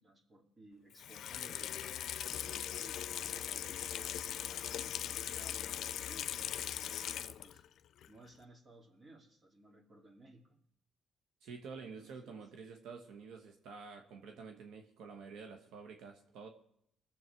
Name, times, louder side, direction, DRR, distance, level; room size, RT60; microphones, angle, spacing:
voice 1, 0.0-1.8 2.3-7.6 8.1-10.6 11.8-12.4, right 2 dB, 35° right, 3 dB, 2.6 m, -58 dB
Water tap faucet / Sink (filling or washing), 0.9-7.7 8.0-8.1, left 10 dB, 70° left, 0.5 m, -40 dB
voice 2, 11.4-16.5, right 5 dB, 85° right, 4 dB, 1.2 m, -49 dB
21.5 x 7.4 x 4.6 m, 0.72 s
cardioid pair, 90°, 0 cm